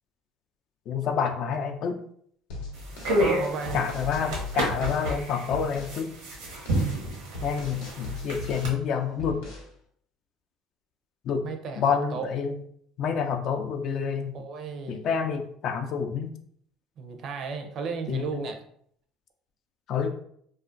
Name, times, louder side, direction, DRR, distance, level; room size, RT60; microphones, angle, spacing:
voice 1, 0.9-2.0 3.7-6.1 7.4-9.4 11.2-11.4 11.8-12.6 13.0-14.3 14.9-16.3 18.1-18.5 19.9-20.1, left 6 dB, 55° left, 6 dB, 0.4 m, -28 dB
sound 1, 2.5-5.1 5.5-6.0 6.3-8.8 9.2-9.7, left 2 dB, 85° left, 0.7 m, -39 dB
sound 2, 2.7-8.7, right 1 dB, 90° right, 0.7 m, -30 dB
voice 2, 3.2-3.8 11.4-12.3 14.3-15.0 17.0-18.6, right 5 dB, 55° right, 5 dB, 0.5 m, -34 dB
2.4 x 2.1 x 2.5 m, 0.65 s
supercardioid pair, 90°, 0 cm